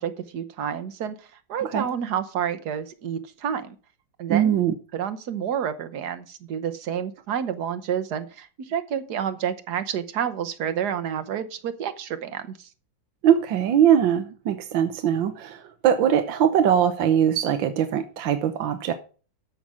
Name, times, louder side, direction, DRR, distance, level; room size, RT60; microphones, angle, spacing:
voice 1, 0.0-3.7 4.2-4.6 4.9-12.6, right 8 dB, 60° right, 1.4 m, -29 dB
voice 2, 4.3-4.7 13.2-18.9, right 9 dB, 80° right, 1.6 m, -21 dB
13.5 x 5.9 x 4.8 m
omnidirectional pair, 2.1 m